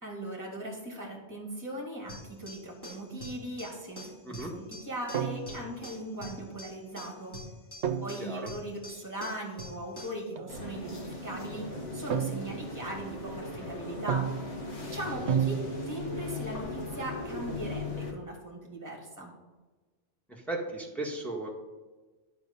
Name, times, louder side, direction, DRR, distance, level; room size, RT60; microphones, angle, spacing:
voice 1, 0.0-7.4 8.0-14.3 14.8-15.6 15.9-19.3, right 1 dB, 15° right, 0 dB, 2.2 m, -39 dB
sound 1, 2.1-10.2, left 1 dB, 20° left, 2.7 m, -46 dB
sound 2, 5.1-5.8 7.8-8.4 10.4-10.5 12.1-12.8 14.1-14.7 15.3-16.2, right 8 dB, 75° right, 1.0 m, -32 dB
voice 2, 8.2-8.5 15.1-15.2 20.3-21.5, right 2 dB, ahead, -2 dB, 1.6 m, -36 dB
sound 3, 10.5-18.1, left 2 dB, 80° left, 1.9 m, -38 dB
10.5 x 5.2 x 5.4 m, 1.2 s
omnidirectional pair, 1.2 m